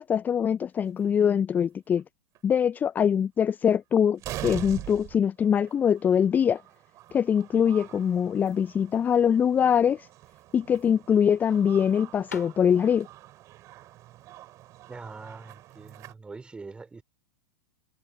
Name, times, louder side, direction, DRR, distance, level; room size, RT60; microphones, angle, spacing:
voice 1, 0.0-2.0 2.4-6.6 7.1-10.1 10.5-13.1, left 8 dB, 20° left, 0.6 m, -23 dB
sound 1, 0.9-1.1 2.0-2.1 2.4-2.5 3.7-3.8 4.2-16.1, right 15 dB, 35° right, 5.6 m, -44 dB
sound 2, 10.6-16.0, left 7 dB, 75° left, 4.4 m, -49 dB
voice 2, 14.9-17.0, right 4 dB, 10° right, 4.0 m, -43 dB
figure-of-eight pair, 95°, 9 cm